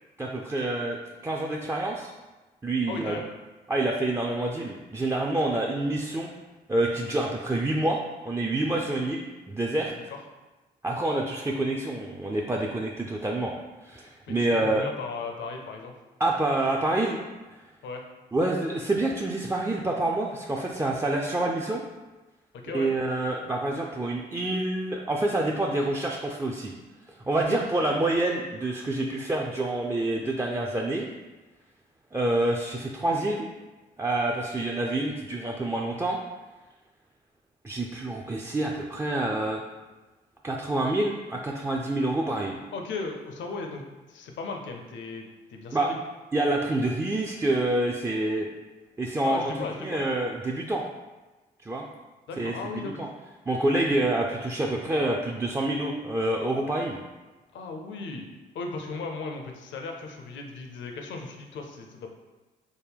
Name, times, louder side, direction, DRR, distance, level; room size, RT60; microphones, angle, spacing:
voice 1, 0.2-2.1 2.6-3.2 3.7-6.3 6.7-8.0 8.2-9.9 10.8-13.5 13.8-14.9 16.2-17.2 18.3-21.8 22.7-26.7 27.3-31.1 32.1-33.5 34.0-36.2 37.6-39.6 40.4-42.6 45.7-45.9 46.3-48.5 49.0-49.5 49.8-50.8 51.6-51.8 52.4-53.1 53.5-57.0, right 2 dB, 15° right, -2 dB, 0.4 m, -27 dB
voice 2, 2.9-3.2 10.1-10.2 14.3-15.9 17.8-18.0 22.5-22.9 27.5-27.6 42.7-43.8 44.1-45.3 45.5-46.0 49.2-50.0 52.3-53.1 57.5-62.1, left 4 dB, 65° left, 3 dB, 0.6 m, -36 dB
3.6 x 2.1 x 3.3 m, 1.2 s
hypercardioid pair, 45°, 21 cm